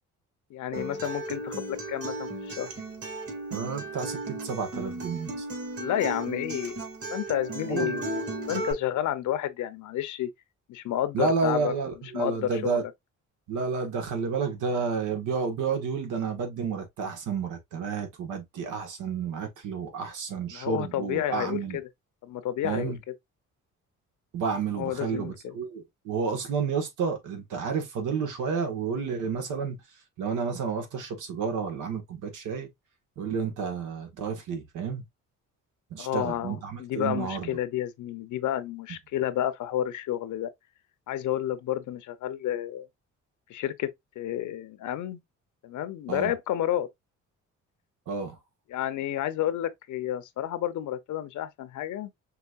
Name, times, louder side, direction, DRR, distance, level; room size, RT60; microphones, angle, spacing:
voice 1, 0.5-2.7 5.8-6.8 7.1-10.3 10.7-11.7 12.1-12.9 20.5-21.9 22.2-22.9 24.8-25.6 36.0-40.5 41.1-42.9 43.5-43.9 44.2-45.2 45.6-46.9 48.7-52.1, left 12 dB, 75° left, 0.9 m, -30 dB
Acoustic guitar, 0.7-8.7, right 2 dB, 50° right, 3.2 m, -35 dB
voice 2, 3.5-5.4 7.7-8.1 11.1-12.8 13.5-21.8 22.6-23.0 24.3-29.8 30.2-32.7 33.2-35.0 35.9-37.5 46.1-46.3 48.1-48.3, right 5 dB, 85° right, 1.7 m, -30 dB
5.9 x 3.2 x 2.6 m
cardioid pair, 90°, 30 cm